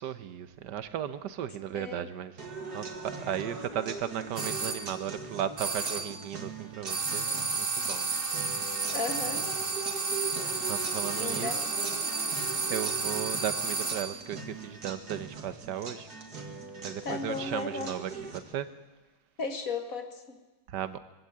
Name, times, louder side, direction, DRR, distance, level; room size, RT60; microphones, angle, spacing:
voice 1, 0.0-2.4 2.7-8.1 10.7-11.7 12.7-16.1 16.8-18.7 20.7-21.0, right 10 dB, 85° right, 13 dB, 1.6 m, -36 dB
voice 2, 1.7-2.1 8.9-9.5 11.2-11.6 17.0-18.0 19.4-20.4, left 3 dB, 55° left, 7 dB, 2.2 m, -35 dB
sound 1, 2.4-18.4, right 4 dB, 65° right, 2.9 m, -41 dB
sound 2, 4.3-4.9 5.6-6.2 6.9-14.2, right 4 dB, 35° right, 2.0 m, -32 dB
23.0 x 16.0 x 8.7 m, 1.2 s
omnidirectional pair, 1.8 m